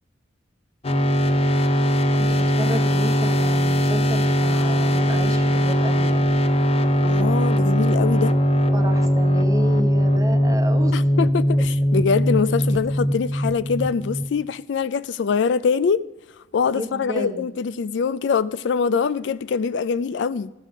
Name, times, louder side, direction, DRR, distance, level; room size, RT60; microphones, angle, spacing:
sound 1, 0.8-14.4, equal, 35° left, 0.7 m, -20 dB
voice 1, 2.1-6.2 8.7-11.0 16.7-17.5, equal, 20° right, 0.9 m, -31 dB
voice 2, 7.0-8.3 10.9-16.0 16.5-20.5, left 5 dB, 80° left, 0.4 m, -23 dB
14.5 x 7.4 x 5.0 m
head